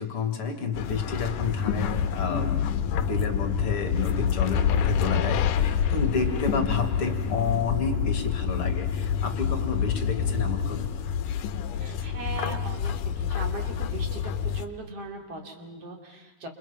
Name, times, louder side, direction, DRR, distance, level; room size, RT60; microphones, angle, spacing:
voice 1, 0.0-2.6 3.1-10.9, left 5 dB, 45° left, 5 dB, 2.8 m, -30 dB
sound 1, 0.7-14.7, left 8 dB, 75° left, 2.5 m, -27 dB
voice 2, 5.9-6.4 11.7-16.5, right 3 dB, 45° right, 3 dB, 3.9 m, -40 dB
28.5 x 28.5 x 5.7 m, 1.2 s
omnidirectional pair, 3.9 m